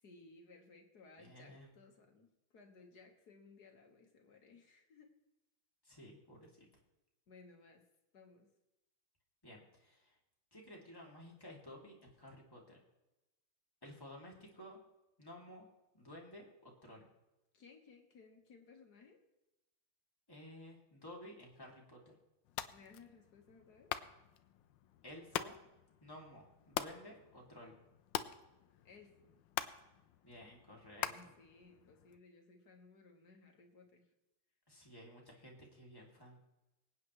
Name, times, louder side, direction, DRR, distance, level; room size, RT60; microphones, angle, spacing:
voice 1, 0.0-5.1 7.3-7.8 8.1-8.5 17.5-19.2 22.7-23.9 28.8-29.4 31.0-34.0, left 4 dB, 50° left, 3 dB, 1.9 m, -60 dB
voice 2, 1.2-1.7 5.8-6.7 9.4-10.2 10.5-12.8 13.8-14.8 15.2-15.7 15.9-17.1 20.3-22.1 25.0-25.5 26.0-27.8 30.2-31.3 34.7-36.4, equal, 10° left, -3 dB, 2.5 m, -54 dB
sound 1, 22.4-32.2, left 11 dB, 70° left, 1.2 m, -45 dB
25.5 x 8.8 x 3.2 m, 0.98 s
omnidirectional pair, 2.3 m